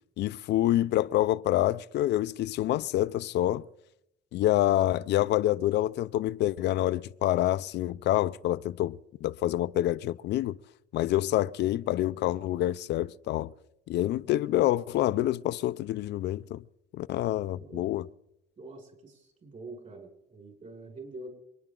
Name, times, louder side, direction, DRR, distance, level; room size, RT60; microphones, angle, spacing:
voice 1, 0.2-3.6 4.3-10.6 10.9-13.5 13.9-16.6 16.9-18.1, left 14 dB, 65° left, 0.5 m, -27 dB
voice 2, 17.6-17.9 18.6-21.3, right 2 dB, 40° right, 6.2 m, -45 dB
28.0 x 10.0 x 3.8 m
cardioid pair, 100°, 19 cm